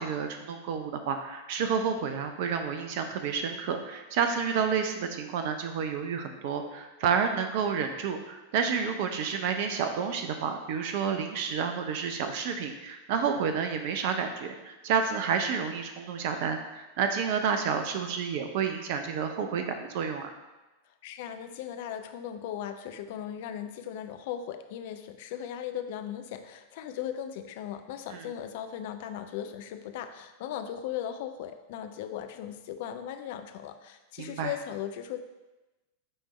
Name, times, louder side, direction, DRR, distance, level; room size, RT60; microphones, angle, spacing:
voice 1, 0.0-20.3 28.1-28.3 34.2-34.5, right 6 dB, 50° right, 7 dB, 0.5 m, -30 dB
voice 2, 21.0-35.2, left 10 dB, 50° left, 8 dB, 0.5 m, -37 dB
9.8 x 3.4 x 3.2 m, 1.1 s
figure-of-eight pair, 90°, 0 cm